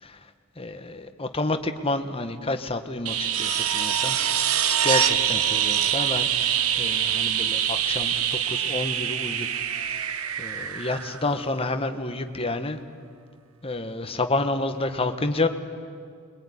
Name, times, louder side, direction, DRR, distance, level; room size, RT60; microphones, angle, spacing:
voice 1, 0.6-4.2 4.7-6.3 6.8-9.5 9.8-10.1 10.4-12.8 13.6-15.5, left 2 dB, 25° left, 7 dB, 1.4 m, -29 dB
sound 1, 3.1-11.7 14.1-14.2, right 9 dB, 70° right, 1.1 m, -25 dB
25.5 x 22.5 x 9.9 m, 2.2 s
head